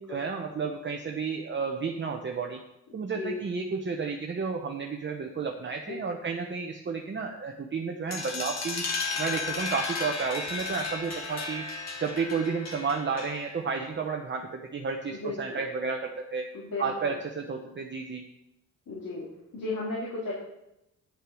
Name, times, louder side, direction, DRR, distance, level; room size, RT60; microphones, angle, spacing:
voice 1, 0.1-2.6 2.9-8.8 9.2-11.6 12.0-16.5 16.8-18.2, right 5 dB, 35° right, 3 dB, 0.9 m, -32 dB
sound 1, 8.1-13.6, left 4 dB, 50° left, 2.0 m, -34 dB
voice 2, 15.1-15.6 16.5-16.9 18.9-19.2 19.5-20.3, left 2 dB, 70° left, -6 dB, 3.4 m, -34 dB
9.9 x 6.4 x 6.3 m, 0.86 s
cardioid pair, 95°, 33 cm